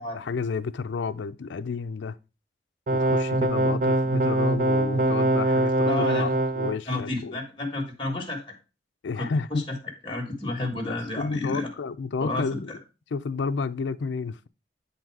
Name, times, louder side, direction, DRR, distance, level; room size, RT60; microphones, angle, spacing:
voice 1, 0.0-2.2 2.9-6.3 6.6-7.4 9.0-9.7 10.9-12.8 13.1-14.5, left 4 dB, 80° left, 0.4 m, -31 dB
sound 1, 2.9-6.8, right 1 dB, 45° right, 0.5 m, -23 dB
voice 2, 5.9-6.3 6.9-8.4 9.1-9.8 10.0-11.7 12.2-12.8, left 2 dB, 25° left, 1.4 m, -31 dB
8.2 x 4.0 x 4.6 m
head